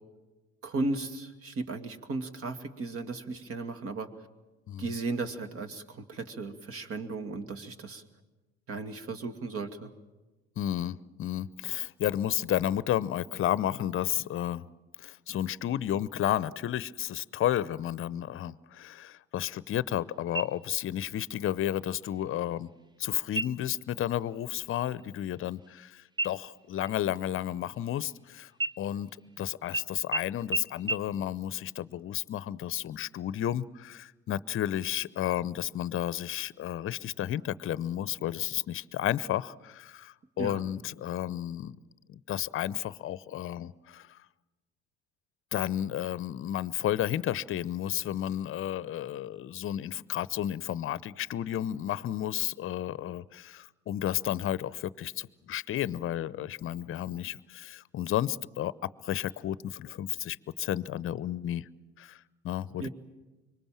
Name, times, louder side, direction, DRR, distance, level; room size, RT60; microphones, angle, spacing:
voice 1, 0.6-4.1 4.8-8.0 8.7-9.9 40.4-40.6 62.8-62.9, right 3 dB, 45° right, 9 dB, 2.2 m, -35 dB
voice 2, 10.6-14.7 15.0-22.7 23.0-28.5 28.8-29.1 29.4-41.8 42.1-44.2 45.5-58.7 59.0-61.7 62.0-62.9, left 12 dB, 40° left, 19 dB, 0.8 m, -32 dB
sound 1, 20.3-21.0 21.4-21.5 22.1-22.6 23.3-23.8 24.2-24.5 24.7-25.9 26.2-28.2 28.6-29.3 29.7-29.8 30.1-30.2 30.5-30.6 30.9-31.0, right 2 dB, 15° right, 0.8 m, -35 dB
25.5 x 23.5 x 7.4 m, 1.2 s
hypercardioid pair, 65°, 32 cm